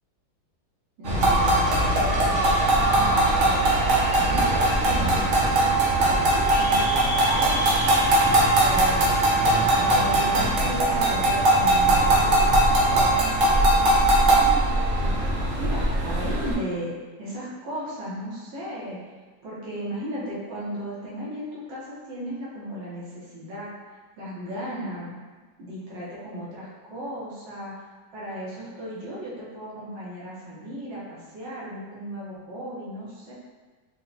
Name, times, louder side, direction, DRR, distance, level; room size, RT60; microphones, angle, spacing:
sound 1, 1.0-16.5, right 1 dB, 55° right, 0.9 m, -20 dB
voice 1, 1.0-3.7 4.2-9.1 9.5-12.5 12.8-15.1 15.6-16.9 17.2-19.1 19.4-23.7 24.2-25.2 25.6-33.3, equal, 85° right, -8 dB, 1.8 m, -36 dB
4.6 x 2.2 x 3.9 m, 1.3 s
omnidirectional pair, 2.0 m